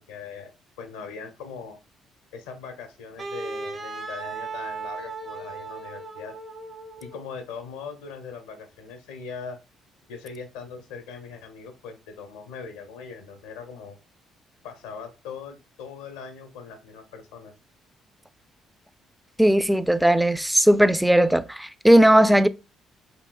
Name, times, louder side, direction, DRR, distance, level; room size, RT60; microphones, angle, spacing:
voice 1, 0.0-1.8 2.3-6.3 7.0-9.6 10.1-14.0 14.6-17.5, left 5 dB, 85° left, 0.7 m, -40 dB
Wind instrument woodwind instrument, 3.2-7.2, right 4 dB, 45° right, 0.7 m, -36 dB
voice 2, 19.4-22.5, right 1 dB, 5° right, 0.3 m, -17 dB
4.7 x 2.7 x 2.3 m
hypercardioid pair, 55°, 0 cm